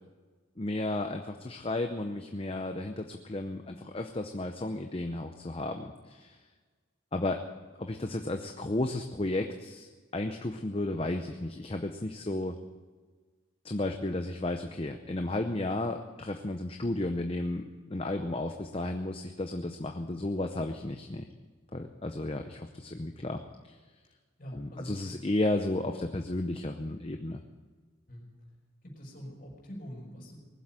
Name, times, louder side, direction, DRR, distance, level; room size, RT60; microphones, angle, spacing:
voice 1, 0.6-6.4 7.1-7.4 7.8-12.6 13.6-21.2 21.7-23.8 24.5-27.4, left 2 dB, 25° left, 5 dB, 0.7 m, -33 dB
voice 2, 24.4-25.1 28.1-28.3 28.8-30.4, equal, 45° left, -2 dB, 5.4 m, -44 dB
19.5 x 7.9 x 8.9 m, 1.4 s
head